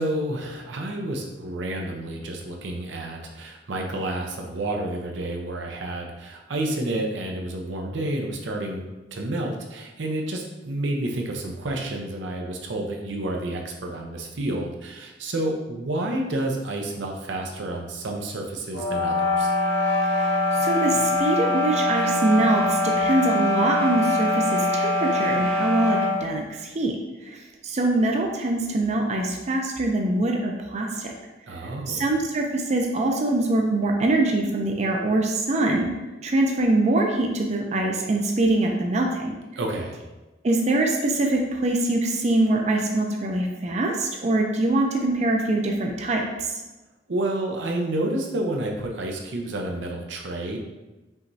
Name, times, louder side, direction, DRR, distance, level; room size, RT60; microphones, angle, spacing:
voice 1, 0.0-19.5 31.5-32.1 39.6-39.9 47.1-50.6, right 1 dB, 90° right, 1 dB, 0.7 m, -30 dB
sound 1, 18.7-26.2, left 2 dB, 75° left, 1.4 m, -23 dB
voice 2, 20.1-26.9 27.2-31.1 31.9-35.9 36.2-39.3 40.4-46.5, right 2 dB, 40° right, 1 dB, 0.5 m, -23 dB
5.6 x 3.1 x 2.7 m, 1.1 s
head